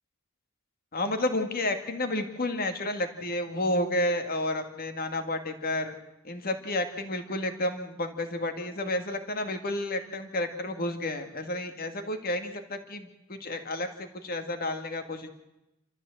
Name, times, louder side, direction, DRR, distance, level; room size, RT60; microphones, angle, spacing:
voice 1, 0.9-5.9 6.2-15.3, left 1 dB, 45° left, 7 dB, 1.9 m, -31 dB
27.5 x 13.5 x 7.7 m, 0.93 s
head